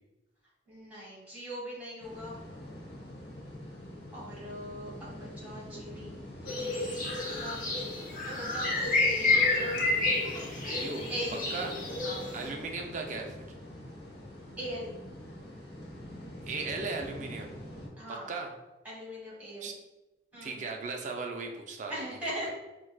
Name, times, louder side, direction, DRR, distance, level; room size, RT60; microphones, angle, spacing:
voice 1, 0.6-2.4 4.1-7.6 8.2-9.7 10.2-12.2 12.4-12.6 14.6-14.9 18.0-18.3 18.8-19.7 20.3-20.6 21.9-22.5, equal, 10° right, -6 dB, 1.4 m, -41 dB
sound 1, 2.0-17.9, left 1 dB, 70° left, 1.1 m, -44 dB
sound 2, 6.5-12.5, left 2 dB, 50° left, 0.8 m, -29 dB
voice 2, 10.6-11.0 11.5-11.8 12.3-13.4 16.4-17.6 18.1-18.5 19.6-19.7 20.4-21.9, right 4 dB, 45° right, 2 dB, 0.4 m, -37 dB
4.5 x 2.3 x 2.3 m, 1.0 s
head